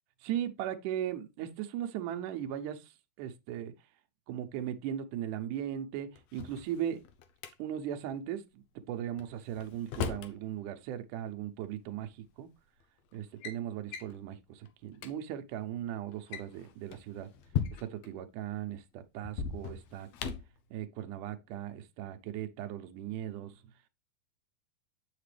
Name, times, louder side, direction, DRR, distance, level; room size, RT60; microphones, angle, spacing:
voice 1, 0.2-3.7 4.3-7.0 7.6-12.5 13.1-17.3 17.8-20.1 20.7-23.7, right 10 dB, 80° right, 2.2 m, -38 dB
Drawer open or close, 6.2-7.5 9.2-10.4 11.6-11.7 12.6-12.8 13.1-13.6 13.9-14.2 14.7-14.8 14.9-15.1 16.1-18.1 19.2-20.6, left 8 dB, 70° left, 1.8 m, -38 dB
7.7 x 5.9 x 3.3 m
omnidirectional pair, 3.7 m